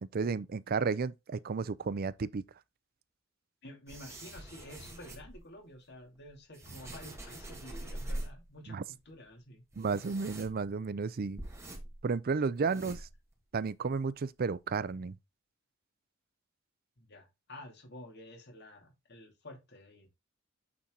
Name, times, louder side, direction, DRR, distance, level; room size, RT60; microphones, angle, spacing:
voice 1, 0.0-2.4 8.7-8.8 9.8-11.4 12.0-13.1 13.5-15.2, right 5 dB, 45° right, 0.4 m, -32 dB
voice 2, 3.6-8.8 9.1-9.6 17.0-20.1, left 1 dB, 55° left, 2.5 m, -50 dB
sound 1, 3.9-5.4 6.1-8.5 8.8-8.9 9.1-9.3 9.7-10.9 11.4-12.1 12.5-13.4 13.7-13.8 14.4-14.5 14.7-14.9, right 1 dB, 15° right, 2.1 m, -44 dB
8.6 x 4.2 x 3.8 m
head